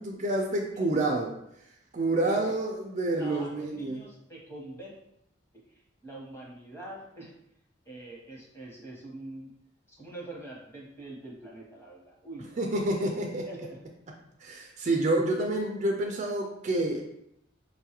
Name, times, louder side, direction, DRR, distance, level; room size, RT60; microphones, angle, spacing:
voice 1, 0.0-1.3 1.9-4.0 12.6-13.5 14.4-17.0, right 2 dB, 35° right, 1 dB, 0.4 m, -28 dB
voice 2, 3.2-4.9 5.5-5.6 6.0-7.3 7.8-9.5 9.9-12.8 13.5-13.8, right 2 dB, 15° left, -4 dB, 0.9 m, -44 dB
5.1 x 2.3 x 2.8 m, 0.78 s
head